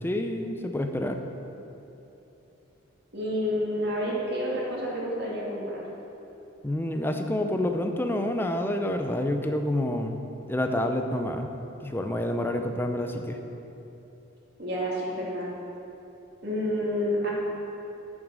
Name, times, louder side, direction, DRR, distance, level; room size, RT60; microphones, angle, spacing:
voice 1, 0.0-1.2 6.6-10.2 10.5-11.5 11.8-13.4, left 1 dB, 10° left, 5 dB, 0.5 m, -28 dB
voice 2, 3.1-5.8 14.6-15.5 16.4-17.3, equal, 55° right, -5 dB, 2.4 m, -29 dB
9.0 x 6.2 x 6.2 m, 2.9 s
head